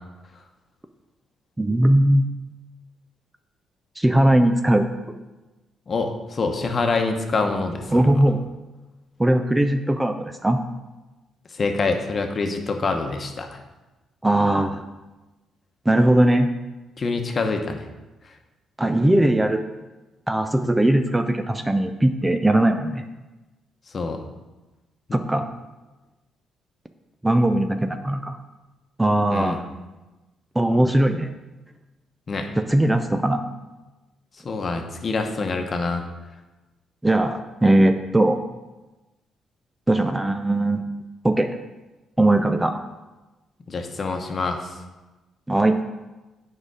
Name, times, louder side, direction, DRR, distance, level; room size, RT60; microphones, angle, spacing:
voice 1, 1.6-2.3 4.0-4.9 7.9-8.4 9.2-10.6 14.2-14.8 15.9-16.5 18.8-19.6 20.3-23.0 25.1-25.5 27.2-28.4 29.0-29.7 30.6-31.3 32.6-33.4 37.0-38.4 39.9-40.8 41.2-41.5 42.2-42.8 45.5-45.8, right 1 dB, 10° right, 7 dB, 0.5 m, -19 dB
voice 2, 5.9-8.2 11.6-13.5 17.0-17.8 23.9-24.2 25.1-25.2 29.3-29.6 32.3-32.5 34.4-36.0 43.7-44.7, left 3 dB, 40° left, 4 dB, 1.0 m, -25 dB
8.2 x 5.0 x 4.8 m, 1.1 s
cardioid pair, 90°, 0 cm